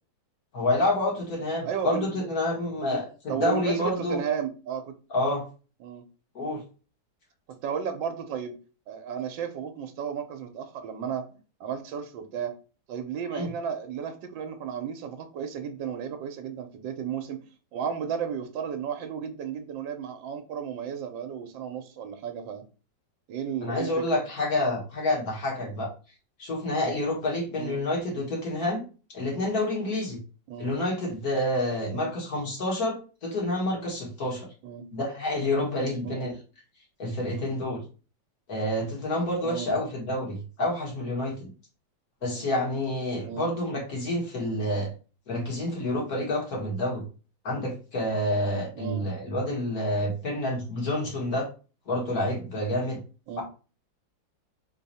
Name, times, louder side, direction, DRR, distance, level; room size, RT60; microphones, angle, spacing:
voice 1, 0.5-4.2 5.1-5.4 6.3-6.6 13.3-13.5 23.6-25.9 26.4-28.8 29.1-30.2 30.6-34.5 34.9-36.4 37.0-37.8 38.5-41.5 42.2-44.9 45.3-47.0 47.4-51.5 51.9-53.0, left 1 dB, 50° left, -2 dB, 2.2 m, -28 dB
voice 2, 1.6-2.2 2.9-3.0 3.3-4.9 5.8-6.0 7.5-8.6 8.9-11.3 11.6-12.6 12.9-22.6 23.3-24.2 27.5-27.8 29.3-29.5 30.5-30.7 31.9-32.1 34.6-34.8 36.0-36.2 39.4-39.7 43.2-43.5 48.8-49.1 53.3-53.4, right 7 dB, 80° right, 7 dB, 1.4 m, -34 dB
4.1 x 3.0 x 4.1 m, 0.35 s
omnidirectional pair, 2.0 m